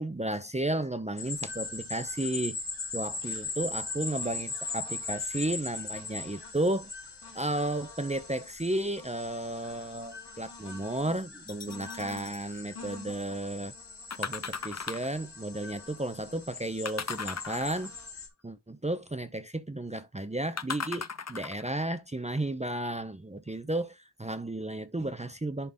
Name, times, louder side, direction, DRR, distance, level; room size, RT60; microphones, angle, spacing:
voice 1, 0.0-2.6 2.9-6.9 7.3-13.7 14.2-17.9 18.4-25.7, right 1 dB, 15° right, 0.7 m, -33 dB
sound 1, 1.2-18.3, left 3 dB, 80° left, 2.8 m, -40 dB
sound 2, 11.5-12.4 14.1-15.2 16.9-18.0 20.6-21.7 22.4-22.5, left 5 dB, 40° left, 0.7 m, -37 dB
11.0 x 3.9 x 3.6 m
wide cardioid pair, 80°, 40 cm